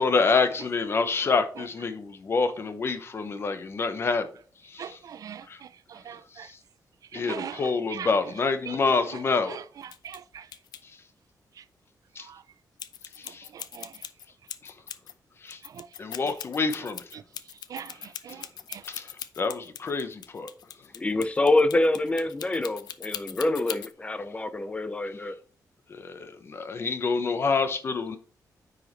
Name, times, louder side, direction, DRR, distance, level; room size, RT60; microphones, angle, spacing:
voice 1, 0.0-4.2 4.6-5.0 5.5-5.6 6.3-6.6 7.1-9.6 12.1-12.3 13.2-13.5 14.6-14.7 15.4-15.6 16.0-17.0 18.8-20.5 25.9-28.2, left 4 dB, 35° left, 0.8 m, -27 dB
voice 2, 4.8-6.5 7.1-8.1 8.7-8.8 9.5-9.6 10.0-10.5 12.3-12.4 13.5-13.9 15.6-15.9 17.7-18.8, right 8 dB, 60° right, 0.4 m, -41 dB
sound 1, 9.8-10.2 10.5-10.8 12.8-15.1 15.5-23.9, left 9 dB, 85° left, 0.6 m, -40 dB
voice 3, 20.9-25.3, left 2 dB, 20° left, 0.5 m, -26 dB
9.4 x 5.0 x 3.1 m
wide cardioid pair, 180°, 7 cm